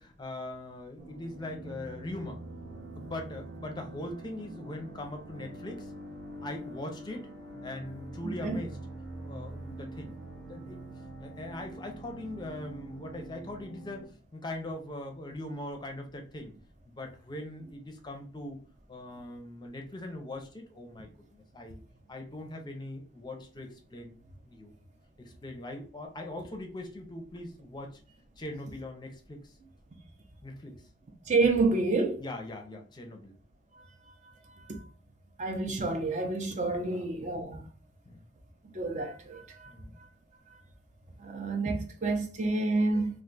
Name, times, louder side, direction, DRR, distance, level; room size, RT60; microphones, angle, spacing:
voice 1, 0.0-2.4 3.0-5.9 6.4-7.3 7.6-8.8 9.2-10.9 11.2-16.5 16.9-18.6 18.9-21.8 22.1-24.2 24.4-24.7 25.2-28.0 28.4-29.5 30.4-30.7 32.2-33.3 36.7-37.1 38.1-38.2 39.7-40.0, left 1 dB, 25° left, 0.5 m, -41 dB
sound 1, 1.0-14.0, right 1 dB, 80° right, 0.7 m, -45 dB
voice 2, 8.2-8.6 31.3-32.2 34.7-34.8 35.4-37.6 38.7-39.7 41.2-43.2, right 3 dB, 40° right, 0.5 m, -29 dB
2.4 x 2.3 x 3.8 m
head